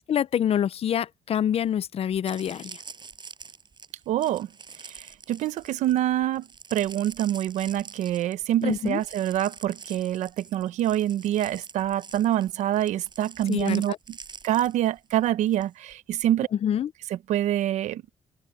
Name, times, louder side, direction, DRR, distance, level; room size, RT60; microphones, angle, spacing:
voice 1, 0.0-2.8 8.6-9.0 13.5-14.0 16.6-16.9, left 9 dB, 55° left, 0.6 m, -26 dB
sound 1, 1.6-1.7 2.1-15.7 15.9-16.3, right 5 dB, 40° right, 5.9 m, -46 dB
voice 2, 4.1-4.5 4.9-14.2 14.4-16.5 17.1-18.0, right 12 dB, 90° right, 0.9 m, -26 dB
cardioid pair, 85°, 12 cm